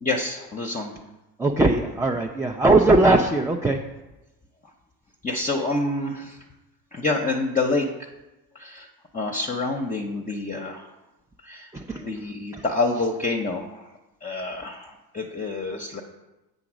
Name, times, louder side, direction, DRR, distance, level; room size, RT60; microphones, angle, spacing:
voice 1, 0.0-1.0 5.2-6.4 6.9-7.9 8.5-8.9 9.1-10.9 11.4-11.7 12.0-13.9 14.2-16.0, left 2 dB, 20° left, 0 dB, 0.7 m, -27 dB
voice 2, 1.4-3.8 11.7-12.0 12.5-12.6, right 2 dB, 5° right, 1 dB, 0.4 m, -20 dB
7.7 x 4.0 x 6.2 m, 1.0 s
supercardioid pair, 85°, 43 cm